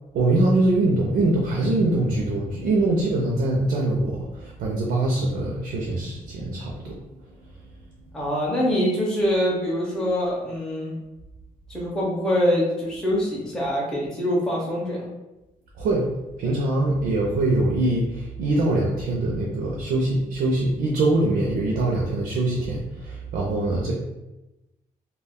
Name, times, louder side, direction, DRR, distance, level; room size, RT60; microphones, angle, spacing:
voice 1, 0.1-7.0 15.8-16.1 16.4-23.9, right 2 dB, 90° right, -2 dB, 0.5 m, -23 dB
voice 2, 8.1-10.9 11.7-15.1, equal, 5° left, -6 dB, 0.5 m, -24 dB
2.3 x 2.2 x 3.4 m, 0.99 s
wide cardioid pair, 175°, 15 cm